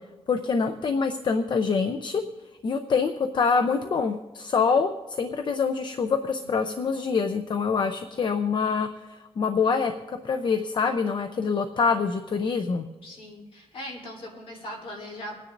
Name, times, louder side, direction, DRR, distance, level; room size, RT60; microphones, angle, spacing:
voice 1, 0.3-2.2 2.6-12.8, left 5 dB, 45° left, 8 dB, 0.6 m, -25 dB
voice 2, 6.6-6.9 13.0-15.4, left 1 dB, 60° left, -2 dB, 3.3 m, -40 dB
28.0 x 9.8 x 2.6 m, 1.2 s
wide cardioid pair, 120°, 11 cm